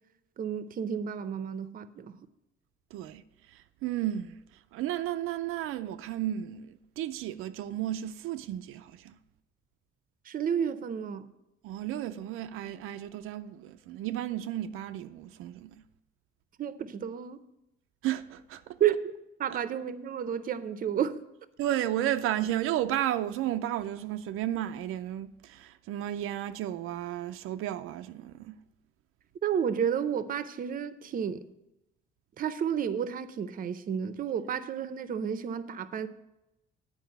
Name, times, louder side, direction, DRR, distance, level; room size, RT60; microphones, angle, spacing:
voice 1, 0.4-2.1 10.3-11.3 16.6-17.4 18.8-19.0 19.4-21.2 29.4-31.4 32.4-36.1, right 8 dB, 40° right, 0.6 m, -31 dB
voice 2, 2.9-3.2 3.5-4.4 4.7-9.2 11.6-15.8 18.0-18.8 21.6-28.6, right 12 dB, 90° right, 0.4 m, -33 dB
9.4 x 4.9 x 7.7 m
cardioid pair, 140°, 21 cm